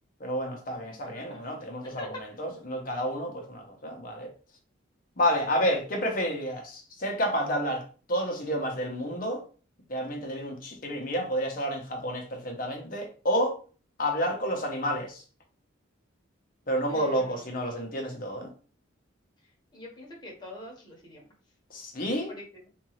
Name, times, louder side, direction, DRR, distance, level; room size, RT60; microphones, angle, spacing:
voice 1, 0.2-4.3 5.2-9.4 9.9-13.6 14.0-15.2 16.7-18.5 21.7-22.3, equal, 45° left, 0.8 m, -30 dB
voice 2, 0.9-2.2 16.9-17.4 19.7-21.3 22.3-22.7, left 1 dB, 20° left, 1.2 m, -45 dB
3.6 x 2.6 x 3.1 m
head